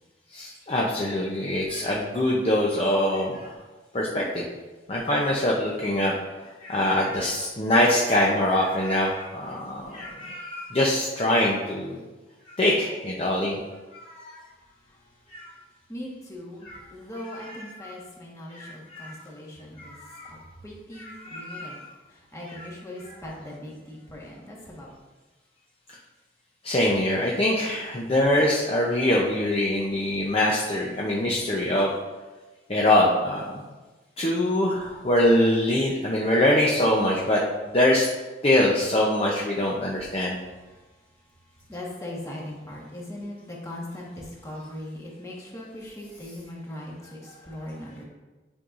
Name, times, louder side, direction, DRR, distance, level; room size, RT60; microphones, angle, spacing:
voice 1, 0.3-3.6 3.9-4.4 4.9-6.1 6.4-12.0 12.5-13.6 13.9-14.4 15.3-15.5 16.6-16.8 17.3-17.9 18.5-19.1 19.8-20.4 21.0-21.9 22.5-22.7 26.6-31.9 32.7-33.6 34.2-37.4 37.7-38.1 38.4-40.4, left 1 dB, 30° left, -3 dB, 0.7 m, -24 dB
voice 2, 15.9-20.0 20.3-20.4 20.6-21.8 22.1-24.9 41.7-48.0, left 1 dB, 15° left, -3 dB, 1.4 m, -39 dB
9.7 x 5.4 x 2.5 m, 1.2 s
head